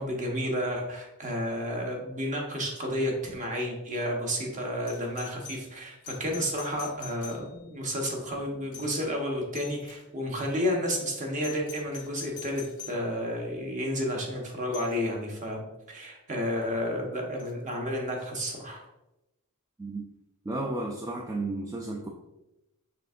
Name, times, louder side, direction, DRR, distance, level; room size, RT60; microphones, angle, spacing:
voice 1, 0.0-18.8, equal, 35° right, 0 dB, 0.9 m, -31 dB
Doorbell, 4.8-7.8 8.7-9.1 9.5-10.0 11.4-13.1 14.7-15.0 17.4-17.5, left 8 dB, 80° left, 0.6 m, -46 dB
voice 2, 20.4-22.1, right 2 dB, 15° right, 0 dB, 0.3 m, -33 dB
5.9 x 3.6 x 2.4 m, 0.93 s
head